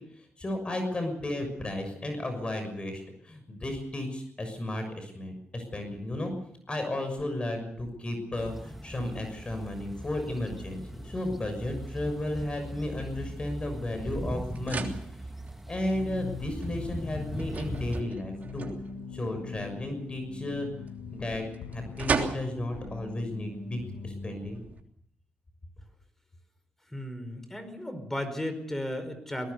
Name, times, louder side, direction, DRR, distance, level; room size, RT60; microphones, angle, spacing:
voice 1, 0.4-6.3 6.7-14.9 15.7-18.7 19.1-20.7 21.1-21.4 21.7-24.6, left 1 dB, 30° left, 6 dB, 6.5 m, -33 dB
sound 1, 8.4-18.0, right 1 dB, 5° right, 1.4 m, -40 dB
sound 2, 11.9-24.8, right 5 dB, 50° right, 3.2 m, -39 dB
sound 3, 15.9-24.5, left 5 dB, 80° left, 5.4 m, -42 dB
voice 2, 26.9-29.5, left 1 dB, 10° left, 10 dB, 4.9 m, -35 dB
22.0 x 19.5 x 6.9 m, 0.69 s
cardioid pair, 75°, 4 cm